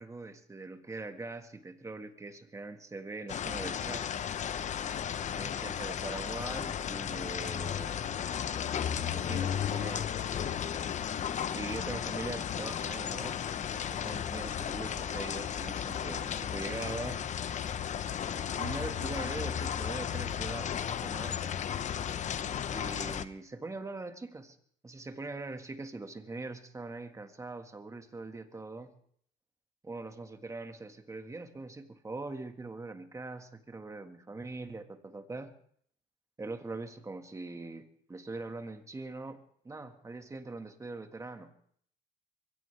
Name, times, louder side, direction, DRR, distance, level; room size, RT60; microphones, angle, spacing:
voice 1, 0.0-4.2 5.3-8.0 8.9-10.1 11.5-13.4 13.7-17.3 18.5-21.5 22.7-24.6 24.8-29.0 29.8-35.5 36.4-41.5, right 3 dB, 20° right, 7 dB, 1.7 m, -42 dB
sound 1, 3.3-23.2, left 8 dB, 45° left, 0.9 m, -34 dB
23.0 x 16.5 x 3.4 m, 0.63 s
cardioid pair, 110°, 17 cm